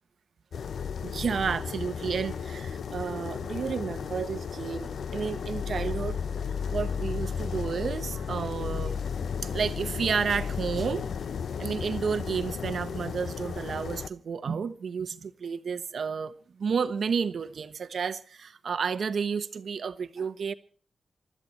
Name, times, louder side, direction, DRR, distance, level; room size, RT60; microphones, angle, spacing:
sound 1, 0.5-14.1, left 6 dB, 80° left, 0.7 m, -34 dB
voice 1, 1.0-6.2 6.7-9.0 9.4-11.1 11.6-20.5, right 6 dB, 65° right, 1.1 m, -31 dB
23.5 x 13.0 x 4.3 m
wide cardioid pair, 160°, 0 cm